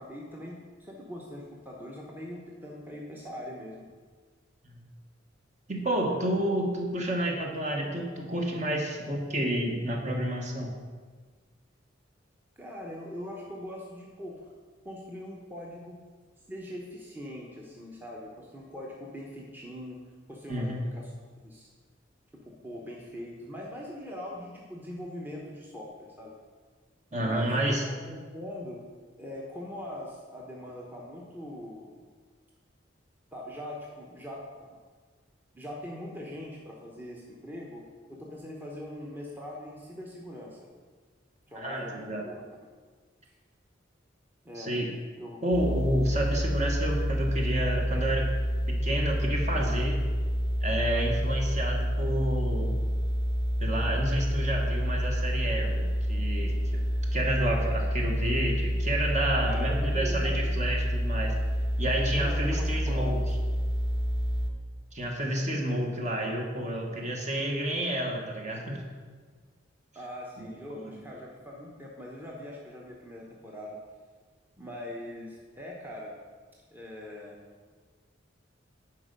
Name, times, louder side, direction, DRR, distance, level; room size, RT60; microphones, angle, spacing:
voice 1, 0.0-3.9 12.6-14.4 14.8-16.0 16.5-20.0 20.3-21.1 21.4-21.7 22.4-26.3 27.1-28.8 29.2-32.0 33.3-34.8 35.5-40.7 41.5-42.4 44.4-44.7 45.2-45.4 59.4-60.6 62.1-63.2 69.9-73.8 74.6-76.2 76.7-77.4, left 1 dB, 10° right, -3 dB, 0.9 m, -41 dB
voice 2, 5.7-10.7 20.5-20.8 27.1-27.8 41.5-42.3 44.5-44.9 45.4-48.3 48.7-50.0 50.6-52.7 53.6-56.8 57.1-61.3 61.8-63.2 64.9-68.8 70.4-70.9, right 1 dB, 40° right, 0 dB, 1.2 m, -30 dB
sound 1, 45.5-64.5, equal, 25° left, 0.6 m, -28 dB
10.5 x 4.5 x 5.2 m, 1.5 s
head